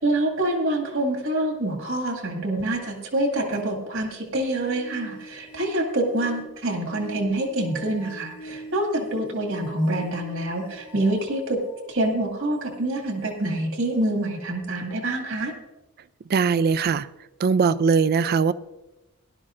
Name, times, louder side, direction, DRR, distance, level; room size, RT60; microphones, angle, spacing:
voice 1, 0.0-11.6 11.9-15.5, right 1 dB, 60° right, 2.2 m, -26 dB
sound 1, 4.3-11.9 12.6-12.7 13.7-13.8, right 1 dB, 75° left, 1.8 m, -43 dB
voice 2, 16.3-17.1 17.4-18.5, right 5 dB, 45° right, 0.4 m, -20 dB
17.5 x 12.0 x 2.5 m
head